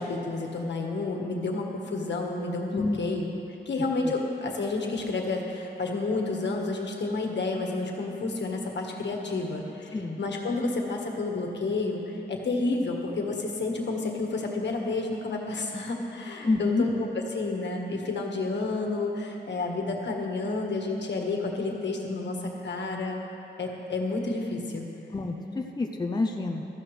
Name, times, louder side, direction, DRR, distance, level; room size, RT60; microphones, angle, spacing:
voice 1, 0.0-3.3 3.6-23.2 23.6-24.9, left 3 dB, 75° left, 1 dB, 1.5 m, -30 dB
voice 2, 2.7-3.0 3.3-3.4 4.0-4.1 9.9-10.2 16.4-16.8 25.1-26.6, left 3 dB, 25° left, 2 dB, 0.6 m, -28 dB
16.0 x 13.5 x 3.3 m, 3.0 s
wide cardioid pair, 140°, 18 cm